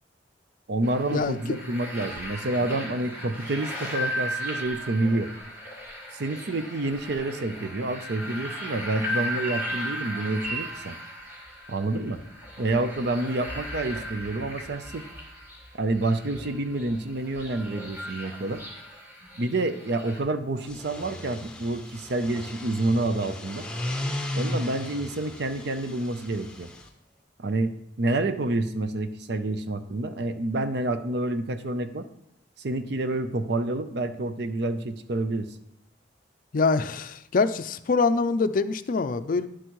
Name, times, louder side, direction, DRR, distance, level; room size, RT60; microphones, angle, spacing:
voice 1, 0.7-5.3 6.1-10.9 11.7-12.2 12.6-15.0 15.8-18.6 19.4-23.7 24.3-26.7 27.4-32.1 32.6-35.5, right 2 dB, 65° right, 10 dB, 0.6 m, -28 dB
sound 1, 0.8-20.2, equal, 15° right, 2.2 m, -36 dB
sound 2, 20.6-26.9, left 1 dB, 5° left, 0.9 m, -35 dB
voice 2, 36.5-39.5, left 4 dB, 50° left, 12 dB, 0.4 m, -24 dB
11.0 x 7.9 x 3.1 m, 0.78 s
head